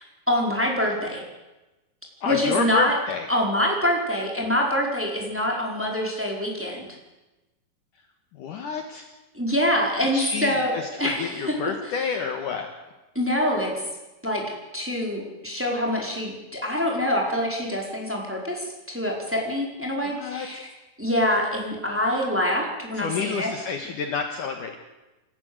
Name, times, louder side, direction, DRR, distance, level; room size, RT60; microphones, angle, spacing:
voice 1, 0.3-1.2 2.3-2.9 3.3-7.0 9.3-11.5 13.1-13.9 14.2-14.4 14.7-20.7 21.0-23.5, left 1 dB, 5° right, -1 dB, 4.3 m, -25 dB
voice 2, 2.2-3.3 8.3-9.1 10.1-12.7 20.0-20.7 22.9-24.8, left 5 dB, 60° left, 4 dB, 2.7 m, -29 dB
28.5 x 14.5 x 8.0 m, 1.1 s
omnidirectional pair, 4.6 m